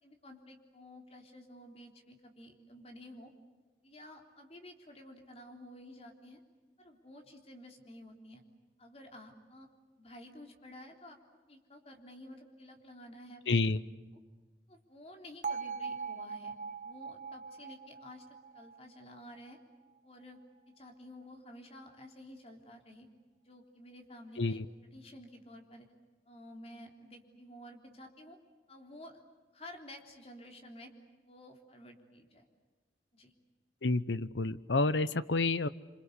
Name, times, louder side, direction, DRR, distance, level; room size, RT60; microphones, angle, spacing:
voice 1, 0.0-3.3 3.8-6.4 6.8-8.4 8.8-9.7 10.0-11.2 11.5-13.4 14.7-16.6 16.8-18.3 18.5-19.6 20.0-20.4 20.7-23.1 23.4-24.6 24.9-25.9 26.3-28.4 28.7-29.2 29.5-30.9 31.3-32.4 33.1-33.3, left 1 dB, 35° left, 3 dB, 3.6 m, -52 dB
voice 2, 13.5-13.8 24.4-24.7 33.8-35.7, left 3 dB, 90° left, 15 dB, 0.9 m, -29 dB
Bell, 15.4-19.5, right 5 dB, 45° right, 1.1 m, -41 dB
27.5 x 25.5 x 8.2 m, 1.3 s
head